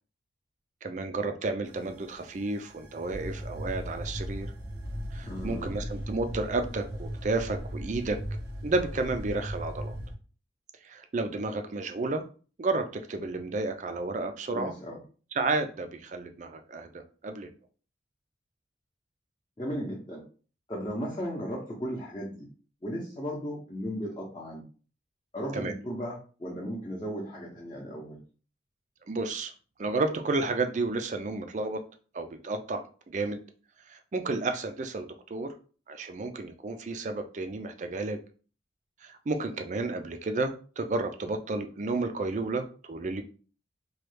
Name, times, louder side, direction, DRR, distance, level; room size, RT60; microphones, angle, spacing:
voice 1, 0.8-4.5 5.1-8.2 8.6-9.9 10.8-12.2 12.6-14.7 15.4-17.5 25.5-25.7 29.1-29.5 29.8-31.8 32.1-33.4 33.9-35.5 35.9-38.2 39.0-43.2, right 3 dB, 40° right, 7 dB, 0.4 m, -31 dB
sound 1, 1.7-10.1, equal, 85° right, 0.9 m, -38 dB
voice 2, 5.2-5.8 14.5-15.0 19.6-20.2 20.7-22.5 22.8-24.6 25.3-28.2, equal, 25° left, -5 dB, 0.7 m, -36 dB
3.1 x 2.3 x 3.2 m, 0.39 s
head